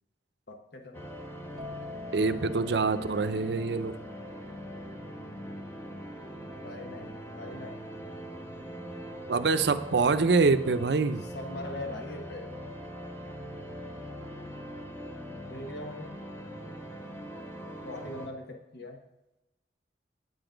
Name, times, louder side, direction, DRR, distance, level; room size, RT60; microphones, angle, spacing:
voice 1, 0.5-1.1 6.6-7.9 11.3-12.6 15.5-16.1 17.8-19.0, left 1 dB, 65° left, 3 dB, 1.1 m, -41 dB
sound 1, 0.9-18.3, equal, 15° left, 1.0 m, -42 dB
sound 2, 1.6-9.1 9.4-9.9, left 3 dB, 25° right, 0.7 m, -49 dB
voice 2, 2.1-4.0 9.3-11.2, right 4 dB, 65° right, 11 dB, 0.5 m, -25 dB
9.4 x 7.9 x 5.1 m, 0.98 s
head